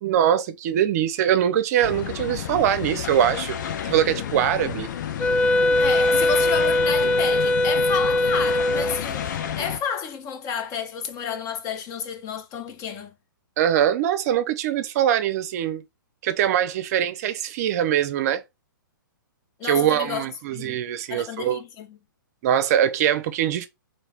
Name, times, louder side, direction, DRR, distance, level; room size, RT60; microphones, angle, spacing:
voice 1, 0.0-3.6 3.8-4.9 13.6-15.8 16.2-18.4 19.6-21.6 22.4-23.7, right 10 dB, 45° right, 0.6 m, -22 dB
sound 1, 1.8-9.8, left 9 dB, 55° left, 0.8 m, -31 dB
Wind instrument woodwind instrument, 5.2-9.0, left 1 dB, 10° left, 0.4 m, -21 dB
voice 2, 5.8-13.1 19.6-20.3 20.5-20.8 21.1-22.0, left 6 dB, 30° left, 0.9 m, -31 dB
3.1 x 3.1 x 4.2 m
hypercardioid pair, 125°, 11 cm